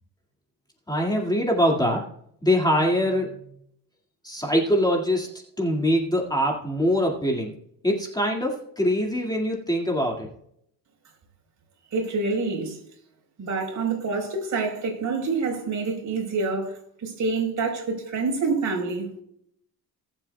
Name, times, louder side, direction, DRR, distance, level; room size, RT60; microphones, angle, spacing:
voice 1, 0.9-2.1 2.4-3.3 4.2-5.3 5.6-7.5 7.8-10.3, equal, 10° left, 2.1 m, -23 dB
voice 2, 11.9-12.8 13.4-19.2, right 4 dB, 45° right, 4.3 m, -27 dB
21.0 x 7.6 x 2.3 m
cardioid pair, 110°, 40 cm